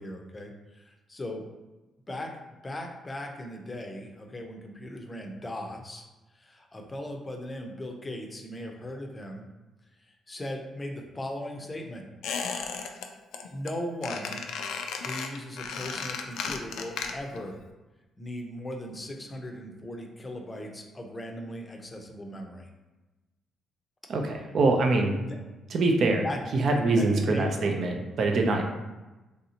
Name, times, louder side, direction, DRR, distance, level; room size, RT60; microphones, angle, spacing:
voice 1, 0.0-1.4 2.1-2.3 2.6-6.0 6.3-9.5 10.1-12.1 13.5-14.5 15.0-17.6 18.2-22.7 25.2-25.4 26.2-26.4 27.0-27.8, left 1 dB, 20° left, 2 dB, 0.5 m, -38 dB
Squeak, 12.2-13.1 13.3-13.7 14.0-17.4 17.7-17.8, left 5 dB, 80° left, 0.3 m, -34 dB
voice 2, 24.1-25.2 25.7-26.2 26.5-28.6, right 3 dB, 60° right, 3 dB, 0.5 m, -24 dB
3.2 x 2.7 x 2.8 m, 1.1 s
cardioid pair, 90°, 0 cm